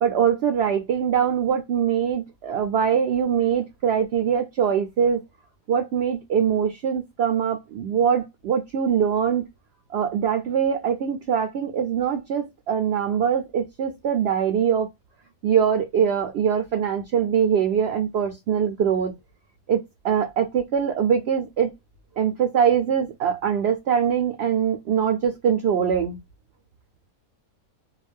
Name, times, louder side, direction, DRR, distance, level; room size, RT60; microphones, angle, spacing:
voice 1, 0.0-5.2 5.7-9.4 9.9-14.9 15.4-19.1 19.7-21.7 22.2-26.2, right 8 dB, 65° right, 0.6 m, -23 dB
2.4 x 2.2 x 3.3 m
omnidirectional pair, 1.5 m